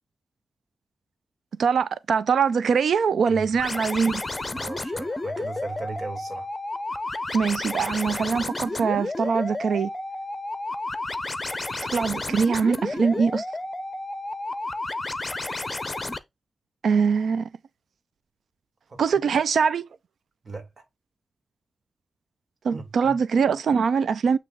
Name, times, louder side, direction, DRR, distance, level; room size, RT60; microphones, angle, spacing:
voice 1, 1.6-4.2 7.3-9.9 11.9-13.4 16.8-17.5 19.0-19.8 22.6-24.4, right 6 dB, 85° right, 0.4 m, -23 dB
sound 1, 3.6-16.2, left 2 dB, 25° left, 0.7 m, -31 dB
voice 2, 4.5-6.5 18.9-19.3 20.4-20.8 22.7-23.2, right 3 dB, 50° right, 2.2 m, -38 dB
8.4 x 3.0 x 3.7 m
cardioid pair, 70°, 0 cm